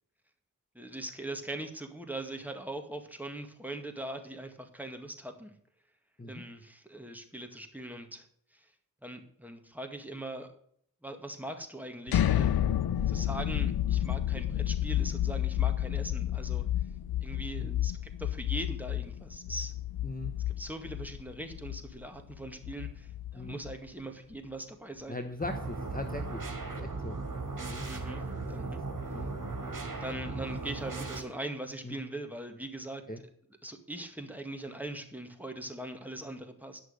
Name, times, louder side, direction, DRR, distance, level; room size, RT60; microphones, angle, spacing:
voice 1, 0.7-5.5 6.2-8.3 8.5-8.7 9.0-10.5 11.0-12.6 13.1-16.7 17.2-19.7 20.5-25.2 27.9-28.8 30.0-33.0 33.6-36.8, right 1 dB, 5° right, 4 dB, 2.0 m, -41 dB
sound 1, 12.1-23.9, left 11 dB, 80° left, 0.5 m, -31 dB
voice 2, 20.0-20.3 23.3-23.6 25.1-26.5 26.8-27.2 27.7-27.9 29.1-29.3 31.8-32.0 33.1-33.2, left 2 dB, 25° left, 6 dB, 1.1 m, -39 dB
sound 2, 25.4-31.2, right 3 dB, 60° right, 2.7 m, -37 dB
11.0 x 6.3 x 6.5 m, 0.65 s
wide cardioid pair, 60°, 36 cm